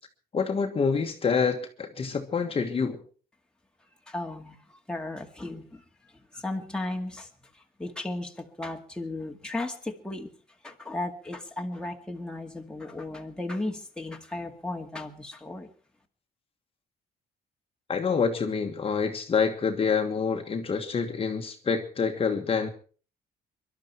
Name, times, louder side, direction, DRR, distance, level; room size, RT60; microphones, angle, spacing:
voice 1, 0.3-3.0 17.9-22.7, left 5 dB, 35° left, 5 dB, 1.5 m, -27 dB
voice 2, 4.1-5.8 6.3-7.3 7.8-10.3 10.6-15.7, left 2 dB, 5° left, 2 dB, 2.0 m, -35 dB
24.0 x 12.0 x 4.6 m, 0.40 s
cardioid pair, 125°, 17 cm